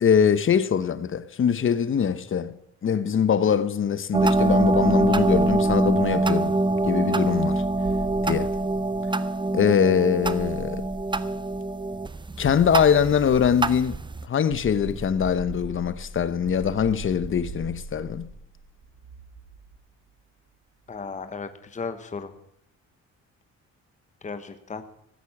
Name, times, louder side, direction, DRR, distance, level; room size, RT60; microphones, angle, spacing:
voice 1, 0.0-2.5 2.8-6.6 6.8-7.6 8.2-8.5 9.5-10.8 12.4-14.0 14.2-18.3, left 7 dB, 45° left, 0.9 m, -23 dB
sound 1, 4.1-14.3, right 2 dB, 15° right, 0.6 m, -24 dB
sound 2, 5.3-6.8 7.8-9.4 10.2-11.6 12.4-14.0 14.5-19.8, right 3 dB, 70° right, 2.9 m, -40 dB
voice 2, 20.9-22.3 24.2-24.8, left 4 dB, 25° left, 1.1 m, -35 dB
14.5 x 8.3 x 7.2 m
cardioid pair, 90°, 30 cm